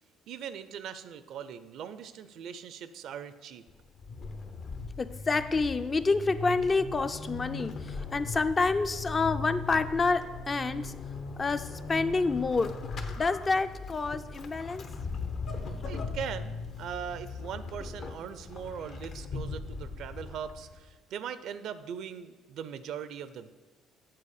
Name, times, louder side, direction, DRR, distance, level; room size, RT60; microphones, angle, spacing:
voice 1, 0.3-3.6 15.9-23.5, right 8 dB, 70° right, 13 dB, 0.5 m, -40 dB
Vehicle / Accelerating revving vroom / Squeak, 3.7-20.9, left 4 dB, 55° left, 0.8 m, -39 dB
voice 2, 5.0-10.9 11.4-12.8 13.2-14.9 15.7-15.8, left 3 dB, 35° left, 10 dB, 0.4 m, -28 dB
7.6 x 4.0 x 6.6 m, 1.3 s
supercardioid pair, 70°, 0 cm